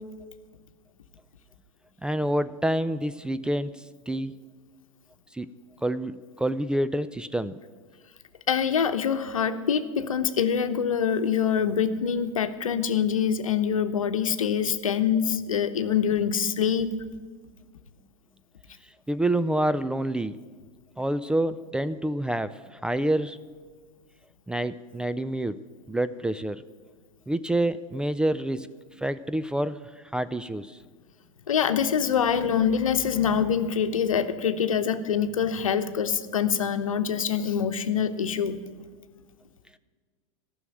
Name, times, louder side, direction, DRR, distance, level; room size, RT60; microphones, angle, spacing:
voice 1, 2.0-4.4 5.3-5.5 5.8-7.6 19.1-20.4 21.0-23.4 24.5-25.6 25.9-26.6 27.3-28.7 29.0-30.8, right 1 dB, 5° right, 13 dB, 0.3 m, -27 dB
voice 2, 8.5-16.9 31.5-38.6, left 7 dB, 80° left, 10 dB, 0.9 m, -25 dB
14.0 x 6.3 x 9.1 m, 1.5 s
hypercardioid pair, 100°, 17 cm